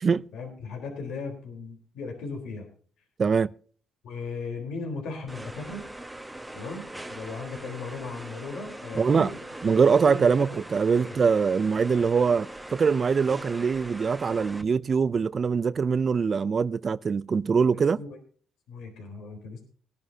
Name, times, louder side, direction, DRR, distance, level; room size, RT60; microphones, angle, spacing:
voice 1, 0.3-2.7 4.0-5.9 6.5-9.5 10.0-10.5 11.0-11.1 18.0-18.2 18.7-19.6, left 3 dB, 80° left, 4.0 m, -37 dB
voice 2, 3.2-3.5 9.0-9.3 9.6-18.0, right 5 dB, 40° right, 0.4 m, -23 dB
sound 1, 5.3-14.6, right 1 dB, 10° right, 1.2 m, -41 dB
20.0 x 10.5 x 2.8 m
cardioid pair, 90°, 0 cm